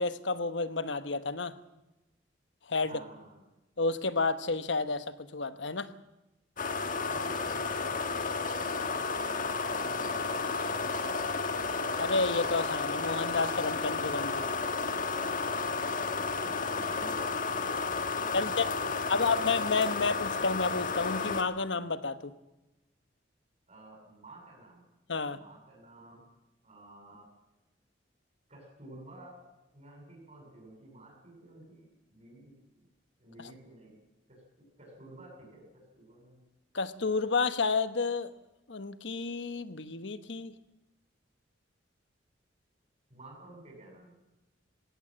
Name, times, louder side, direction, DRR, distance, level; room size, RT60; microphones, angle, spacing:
voice 1, 0.0-1.5 2.7-3.0 3.8-5.9 12.0-14.4 18.3-18.6 19.1-22.3 25.1-25.4 36.7-38.3 38.7-40.5, left 4 dB, 75° left, 12 dB, 1.2 m, -30 dB
voice 2, 2.8-3.5 7.0-11.7 15.7-19.5 19.9-20.2 23.7-24.8 25.3-26.2 26.6-27.3 28.5-29.4 29.7-32.9 33.2-34.0 34.3-34.4 34.8-36.4 43.1-44.2, right 1 dB, 35° right, 0 dB, 7.3 m, -52 dB
sound 1, 6.6-21.4, left 4 dB, 45° left, 1.6 m, -32 dB
19.5 x 17.5 x 7.6 m, 0.99 s
head